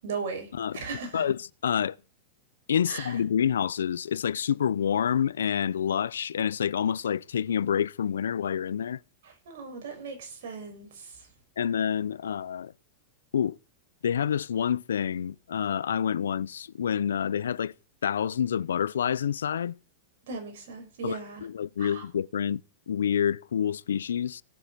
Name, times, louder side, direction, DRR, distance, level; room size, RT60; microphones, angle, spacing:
voice 1, 0.0-1.2 2.9-3.2 9.2-11.2 20.3-21.5 21.8-22.0, right 5 dB, 70° right, 6.6 m, -37 dB
voice 2, 0.6-0.9 1.1-1.9 2.7-9.0 11.6-12.7 13.3-13.6 14.0-17.7 18.0-19.7 21.0-22.6 22.9-24.4, left 8 dB, 90° left, 0.6 m, -28 dB
17.0 x 7.4 x 6.7 m
hypercardioid pair, 115°, 0 cm